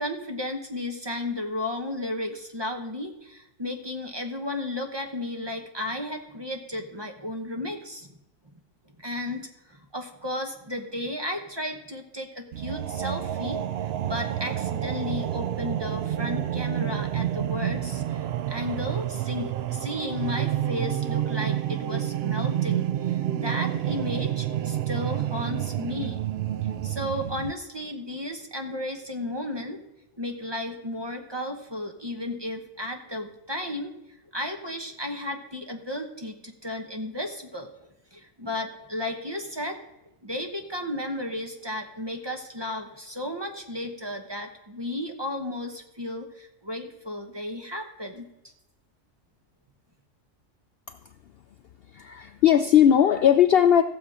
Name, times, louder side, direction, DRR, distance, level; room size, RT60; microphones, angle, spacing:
voice 1, 0.0-8.2 9.0-26.2 26.8-29.8 30.2-33.9 34.3-37.7 38.1-39.8 40.2-48.3, left 1 dB, 20° right, 3 dB, 1.0 m, -34 dB
sound 1, 12.5-27.5, right 12 dB, 65° right, 0.7 m, -29 dB
voice 2, 51.9-53.8, left 9 dB, 65° left, 8 dB, 0.6 m, -18 dB
15.0 x 7.0 x 4.9 m, 0.90 s
omnidirectional pair, 1.3 m